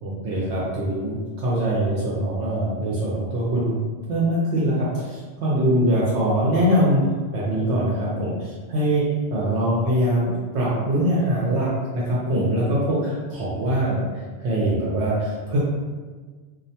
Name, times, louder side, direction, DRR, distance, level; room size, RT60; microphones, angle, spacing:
voice 1, 0.0-3.8 4.1-7.0 7.3-9.1 9.3-14.1 14.4-15.6, right 1 dB, 70° right, -6 dB, 0.8 m, -23 dB
2.3 x 2.1 x 2.7 m, 1.4 s
omnidirectional pair, 1.2 m